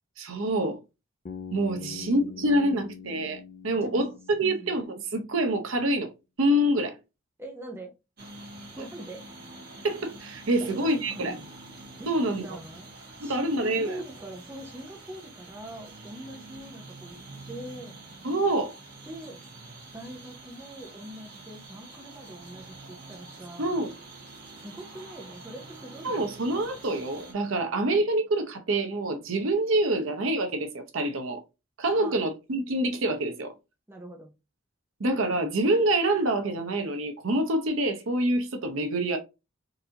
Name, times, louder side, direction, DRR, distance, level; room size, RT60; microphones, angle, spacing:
voice 1, 0.2-0.8 1.5-4.1 4.4-6.1 6.4-7.0 9.8-11.4 12.1-12.4 13.2-14.0 18.2-18.8 23.6-24.0 26.0-31.4 31.8-33.5 35.0-39.2, right 1 dB, 85° right, 0.7 m, -26 dB
Bass guitar, 1.3-5.2, left 6 dB, 40° left, 0.4 m, -43 dB
voice 2, 1.8-2.9 3.8-4.1 4.4-4.7 7.4-7.9 8.8-9.2 10.6-11.5 12.0-12.9 13.2-17.2 17.5-18.0 19.1-19.4 19.9-23.8 24.6-26.3 32.0-32.2 33.9-34.3, right 1 dB, 10° right, 0.6 m, -43 dB
sound 1, 8.2-27.3, right 2 dB, 50° right, 1.5 m, -46 dB
4.0 x 2.6 x 2.8 m
head